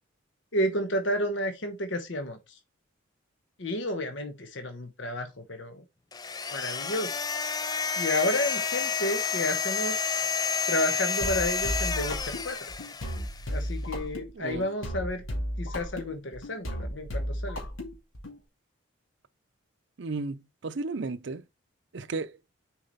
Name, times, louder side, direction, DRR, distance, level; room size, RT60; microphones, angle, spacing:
voice 1, 0.5-2.4 3.6-5.8 6.5-7.2 8.0-10.1 10.7-12.6 13.5-15.2 15.6-17.6, left 1 dB, 65° left, 1.2 m, -31 dB
sound 1, 6.1-13.5, left 5 dB, 20° left, 0.3 m, -30 dB
sound 2, 11.2-18.4, equal, 85° left, 2.5 m, -34 dB
voice 2, 20.0-21.4 21.9-22.4, right 3 dB, 60° right, 0.5 m, -34 dB
6.6 x 4.8 x 4.0 m
head